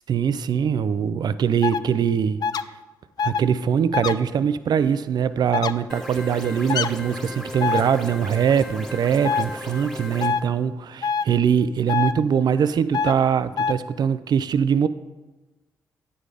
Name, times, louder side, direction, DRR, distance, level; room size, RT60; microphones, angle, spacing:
voice 1, 0.1-2.4 3.2-14.9, right 7 dB, 60° right, 14 dB, 0.4 m, -22 dB
sound 1, 1.6-1.8 2.4-2.6 3.2-3.4 3.9-4.1 5.5-5.7 6.7-6.9 7.6-7.8 9.2-9.4 10.2-10.4 11.0-11.2 11.9-12.1 12.9-13.1 13.6-13.7, left 6 dB, 55° left, 0.4 m, -23 dB
sound 2, 5.9-10.3, left 1 dB, 5° left, 1.8 m, -36 dB
9.3 x 4.9 x 4.9 m, 1.1 s
supercardioid pair, 45°, 8 cm